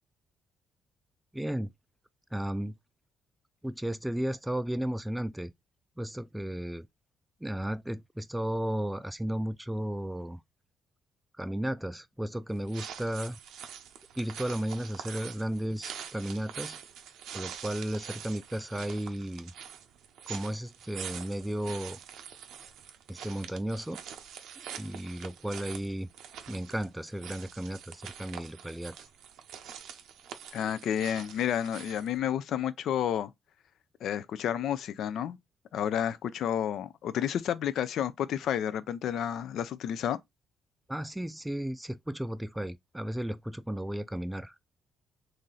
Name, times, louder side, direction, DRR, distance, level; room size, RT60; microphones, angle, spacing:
voice 1, 1.3-1.7 2.3-2.8 3.6-5.5 6.0-6.9 7.4-10.4 11.4-13.4 14.2-16.8 17.3-19.5 20.3-22.0 23.1-24.0 24.6-26.1 26.5-29.0 40.9-44.6, right 1 dB, 5° right, 0.3 m, -34 dB
sound 1, 12.5-32.2, right 8 dB, 85° right, 0.6 m, -45 dB
voice 2, 30.5-33.3 34.0-35.4 35.7-40.2, left 9 dB, 75° left, 0.4 m, -30 dB
3.1 x 2.6 x 3.7 m
cardioid pair, 90°, 0 cm